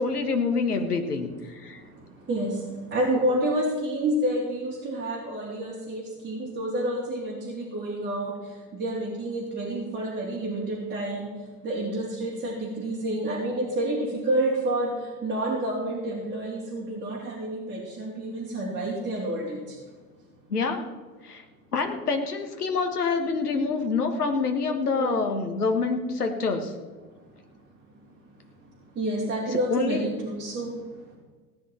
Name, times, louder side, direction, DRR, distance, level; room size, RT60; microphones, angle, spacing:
voice 1, 0.0-1.8 20.5-20.9 21.2-21.4 21.7-26.7 29.7-30.0, left 4 dB, 80° left, 6 dB, 1.6 m, -26 dB
voice 2, 2.9-8.3 8.7-11.3 11.6-14.9 15.2-19.6 24.9-25.3 29.0-30.7, right 1 dB, 25° right, -6 dB, 3.5 m, -29 dB
17.5 x 9.7 x 4.5 m, 1.4 s
figure-of-eight pair, 75°, 45 cm